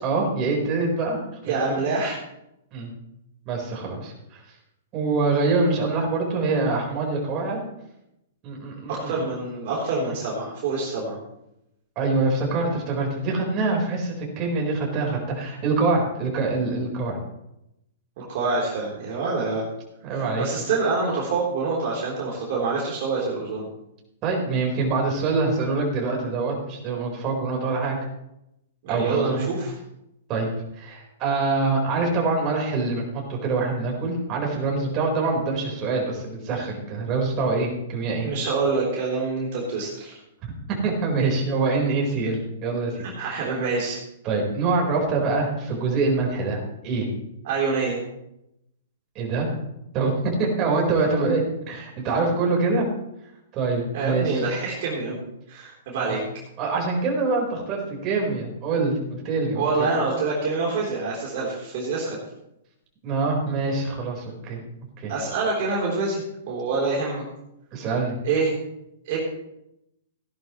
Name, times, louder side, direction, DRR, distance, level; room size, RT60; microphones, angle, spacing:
voice 1, 0.0-1.2 1.5-1.6 2.7-2.9 3.5-4.4 4.9-7.6 8.4-9.2 12.0-17.2 20.0-20.5 24.2-28.0 28.9-29.5 30.3-30.5 30.8-38.3 40.7-43.5 44.2-47.1 49.1-49.5 49.9-51.4 51.7-52.9 53.5-54.3 55.9-56.2 56.6-59.9 63.0-64.6 65.0-65.1 67.7-68.1, right 3 dB, 35° right, -1 dB, 4.5 m, -25 dB
voice 2, 1.4-2.2 8.9-11.2 18.2-19.7 20.1-23.7 28.8-29.7 38.2-40.2 43.2-44.0 47.4-48.0 53.9-55.2 55.5-56.2 59.6-62.2 65.1-67.2 68.2-68.6 69.1-69.2, right 4 dB, 55° right, -4 dB, 3.7 m, -26 dB
17.0 x 11.5 x 3.2 m, 0.85 s
hypercardioid pair, 120°, 0 cm